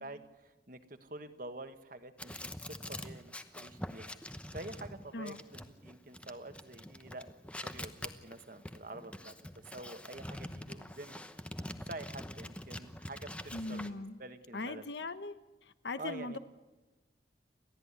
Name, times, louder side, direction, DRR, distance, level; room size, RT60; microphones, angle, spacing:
voice 1, 0.0-4.1 4.5-7.3 7.6-11.2 11.9-13.3 13.7-14.8 16.0-16.4, right 2 dB, 50° right, 1.6 m, -47 dB
sound 1, 2.2-13.9, left 1 dB, 5° left, 1.0 m, -45 dB
voice 2, 13.5-14.2 14.5-15.4 15.8-16.4, left 2 dB, 80° left, 1.2 m, -39 dB
29.5 x 14.0 x 9.7 m
head